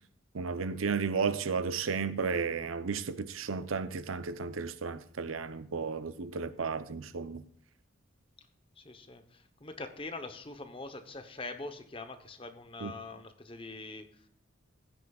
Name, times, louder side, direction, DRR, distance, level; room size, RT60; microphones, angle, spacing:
voice 1, 0.3-7.4 12.8-12.9, right 5 dB, 85° right, 0.7 m, -33 dB
voice 2, 8.8-14.1, left 3 dB, 25° left, 0.9 m, -43 dB
15.0 x 9.8 x 2.4 m
head